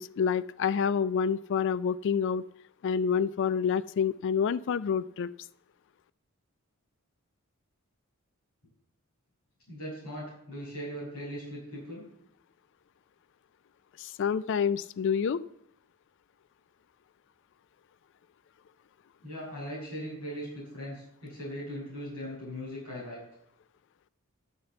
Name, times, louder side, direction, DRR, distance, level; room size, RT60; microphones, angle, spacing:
voice 1, 0.0-2.4 2.8-5.3 14.0-15.4, left 7 dB, 55° left, 17 dB, 0.3 m, -28 dB
voice 2, 9.7-12.0 19.2-23.2, equal, 85° left, -5 dB, 6.2 m, -39 dB
12.0 x 6.6 x 8.0 m, 0.75 s
head